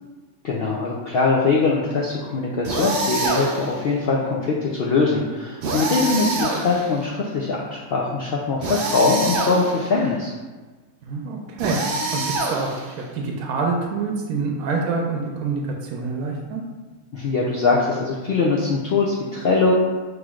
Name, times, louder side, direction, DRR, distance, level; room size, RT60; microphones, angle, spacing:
voice 1, 0.4-10.3 17.1-19.7, left 3 dB, 70° left, -4 dB, 0.5 m, -22 dB
sound 1, 2.6-3.8 5.6-7.1 8.6-9.9 11.6-13.0, right 2 dB, 60° right, 0.6 m, -26 dB
voice 2, 11.0-12.2 12.5-16.6, right 4 dB, 85° right, 1 dB, 1.0 m, -26 dB
6.0 x 3.1 x 2.4 m, 1.3 s
omnidirectional pair, 1.5 m